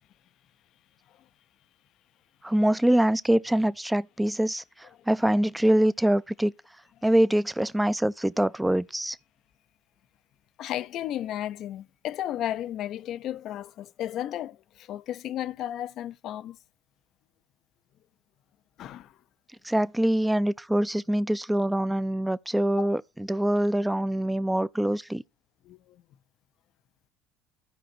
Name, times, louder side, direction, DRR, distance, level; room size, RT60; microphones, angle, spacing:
voice 1, 2.4-6.5 7.0-9.2 19.6-25.2, right 1 dB, 5° right, 0.5 m, -24 dB
voice 2, 10.6-14.6 14.9-16.6 18.8-19.1 22.8-22.9 25.7-25.8, left 12 dB, 55° left, 0.5 m, -33 dB
15.0 x 5.0 x 2.7 m
hypercardioid pair, 65°, 0 cm